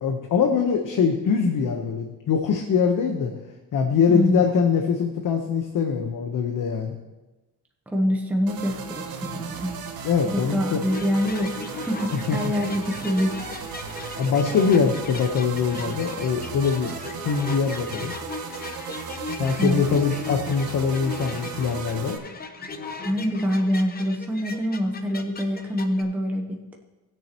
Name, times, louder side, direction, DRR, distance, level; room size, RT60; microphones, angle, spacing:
voice 1, 0.0-3.3 3.7-7.0 10.0-10.8 12.1-12.4 14.2-17.0 17.2-18.1 19.4-22.2, left 6 dB, 60° left, 3 dB, 1.1 m, -23 dB
voice 2, 4.1-4.5 7.9-9.7 10.2-13.3 19.6-19.8 23.0-26.7, equal, 5° right, 0 dB, 1.0 m, -25 dB
sound 1, 8.5-22.2, right 6 dB, 80° right, 1.4 m, -36 dB
sound 2, 10.9-26.0, left 3 dB, 25° left, 0.8 m, -38 dB
19.5 x 6.8 x 3.0 m, 1.1 s
cardioid pair, 140°, 35 cm